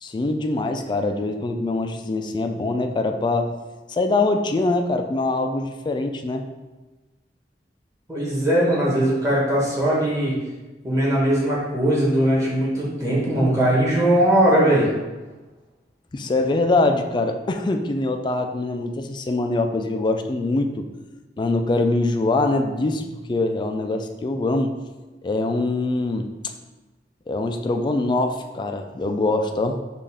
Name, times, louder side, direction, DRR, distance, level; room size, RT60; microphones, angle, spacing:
voice 1, 0.0-3.5 3.9-6.4 16.1-20.9 21.4-24.7 25.2-26.3 27.3-29.8, left 2 dB, 25° left, 6 dB, 0.3 m, -23 dB
voice 2, 8.1-10.3 10.8-14.9, right 1 dB, 20° right, -6 dB, 1.2 m, -20 dB
5.3 x 2.5 x 3.4 m, 1.2 s
head